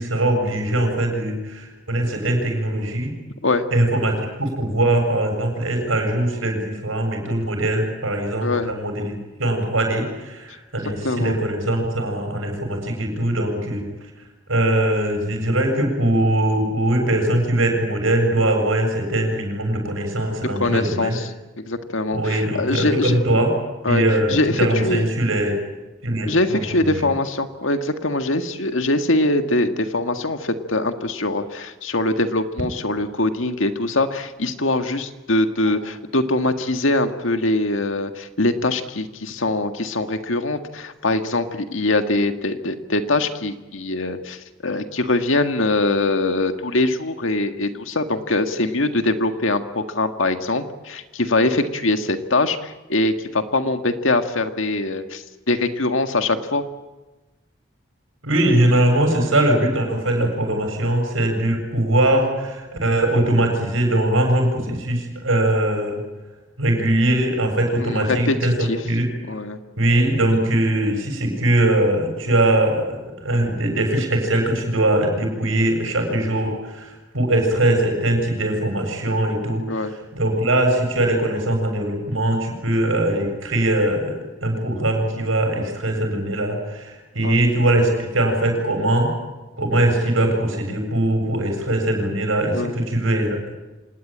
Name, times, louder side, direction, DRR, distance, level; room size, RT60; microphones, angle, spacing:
voice 1, 0.0-3.1 3.7-13.9 14.5-21.2 22.1-23.5 23.9-25.5 26.0-26.6 26.9-27.0 58.2-66.0 66.6-69.1 69.8-79.6 80.1-84.1 84.4-89.1 89.6-93.5, right 1 dB, 85° right, 3 dB, 7.6 m, -21 dB
voice 2, 8.4-8.7 11.0-11.4 20.6-23.2 23.8-24.0 24.3-25.1 26.3-56.6 67.8-68.4 68.7-68.8 69.3-69.6 79.7-79.9 87.2-87.4 92.5-92.8, left 2 dB, 75° left, 7 dB, 1.9 m, -22 dB
26.5 x 19.5 x 8.8 m, 1.1 s
head